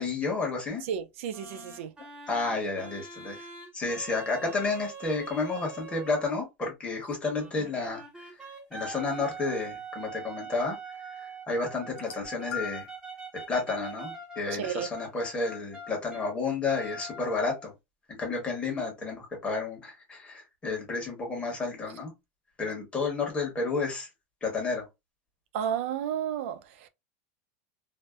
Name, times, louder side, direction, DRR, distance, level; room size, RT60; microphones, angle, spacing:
voice 1, 0.0-0.8 2.3-3.5 3.7-8.3 8.7-10.8 11.2-12.9 13.5-17.7 18.1-22.1 22.6-24.1 24.4-24.9, left 3 dB, 15° left, 1.1 m, -31 dB
voice 2, 0.9-1.9 14.5-14.9 25.5-26.9, right 9 dB, 75° right, 0.4 m, -32 dB
sound 1, 1.3-6.4 7.3-16.3 16.7-17.7, right 3 dB, 10° right, 0.7 m, -43 dB
sound 2, 11.9-13.0 13.9-14.1 15.2-15.3, left 8 dB, 80° left, 0.7 m, -39 dB
2.6 x 2.0 x 2.3 m
supercardioid pair, 150°, 7 cm